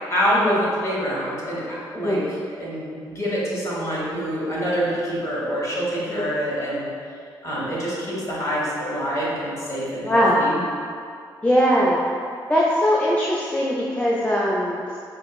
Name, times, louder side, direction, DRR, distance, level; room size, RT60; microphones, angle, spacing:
voice 1, 0.1-2.2 2.6-6.9 7.4-10.6, equal, 30° left, -6 dB, 1.4 m, -26 dB
voice 2, 10.0-10.4 11.4-12.0 12.5-15.0, equal, 10° left, -6 dB, 0.4 m, -20 dB
5.0 x 2.1 x 2.3 m, 2.3 s
hypercardioid pair, 40°, 11 cm